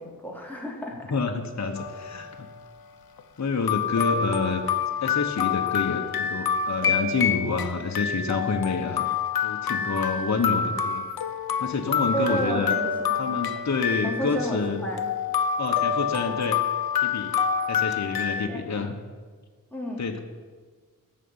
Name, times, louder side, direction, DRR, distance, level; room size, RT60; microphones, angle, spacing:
voice 1, 0.0-1.1 12.1-13.2 14.0-15.1 18.5-18.6 19.7-20.0, right 1 dB, 5° left, -2 dB, 3.1 m, -31 dB
voice 2, 1.1-2.5 3.4-4.6 5.0-9.1 9.4-11.0 11.6-12.7 13.2-14.8 15.6-16.6 17.0-17.3 17.7-18.9 20.0-20.2, left 4 dB, 50° left, 2 dB, 1.2 m, -28 dB
sound 1, 1.8-2.3 3.2-3.3 3.7-18.5, left 7 dB, 85° left, 0.9 m, -27 dB
13.5 x 6.7 x 8.8 m, 1.5 s
wide cardioid pair, 80°, 35 cm